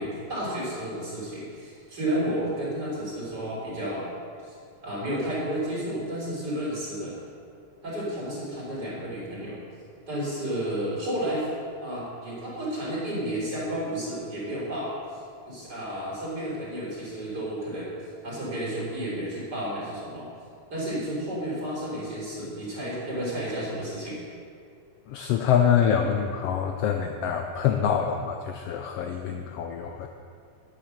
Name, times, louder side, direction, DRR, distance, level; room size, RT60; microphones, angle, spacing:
voice 1, 0.0-4.1 4.4-4.5 4.8-7.1 7.8-9.6 10.1-11.5 11.8-17.9 18.2-20.2 20.7-24.2, right 1 dB, 35° right, -7 dB, 3.9 m, -32 dB
voice 2, 25.1-30.1, left 8 dB, 85° left, 4 dB, 1.3 m, -25 dB
10.5 x 7.7 x 6.4 m, 2.3 s
omnidirectional pair, 3.4 m